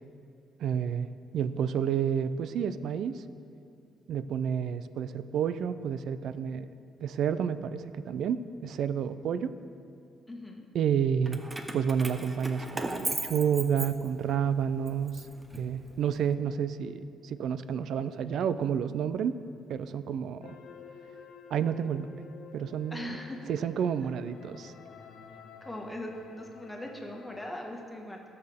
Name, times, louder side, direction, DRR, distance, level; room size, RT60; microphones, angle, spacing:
voice 1, 0.6-1.1 1.3-3.2 4.1-6.7 7.0-9.5 10.7-11.4 11.7-15.2 15.6-19.3 19.7-20.6 21.5-22.1 22.5-23.2 23.5-24.7, right 8 dB, 75° right, 13 dB, 0.4 m, -30 dB
voice 2, 10.3-10.7 22.9-23.4 25.6-28.2, left 1 dB, 10° left, 0 dB, 1.7 m, -40 dB
Keys jangling, 11.3-14.4 14.9-16.1, right 2 dB, 20° right, 0.8 m, -37 dB
sound 1, 20.4-27.5, left 6 dB, 80° left, 1.0 m, -51 dB
17.0 x 6.8 x 3.6 m, 2.6 s
cardioid pair, 90°, 0 cm